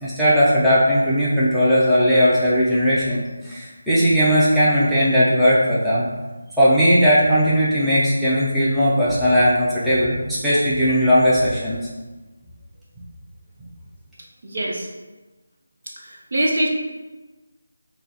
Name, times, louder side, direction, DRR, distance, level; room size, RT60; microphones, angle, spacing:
voice 1, 0.0-6.0 6.6-11.9, equal, ahead, -12 dB, 0.5 m, -18 dB
voice 2, 14.4-14.9 16.0-16.7, right 1 dB, 55° right, -2 dB, 0.7 m, -23 dB
3.2 x 2.0 x 4.0 m, 1.2 s
figure-of-eight pair, 160°, 0 cm